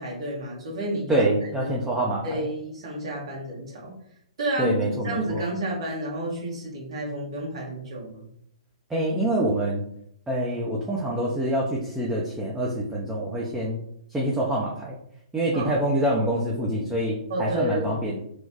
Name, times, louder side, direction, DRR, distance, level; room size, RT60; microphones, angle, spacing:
voice 1, 0.0-1.2 1.6-1.9 2.2-3.9 4.4-4.8 5.0-8.3 15.5-15.8 17.3-18.0, right 1 dB, 55° right, -4 dB, 1.2 m, -31 dB
voice 2, 1.1-2.5 4.6-5.4 8.9-9.8 10.3-13.8 14.1-14.9 15.3-18.2, right 1 dB, 5° right, -5 dB, 0.4 m, -26 dB
3.0 x 2.1 x 2.8 m, 0.71 s
figure-of-eight pair, 120°, 3 cm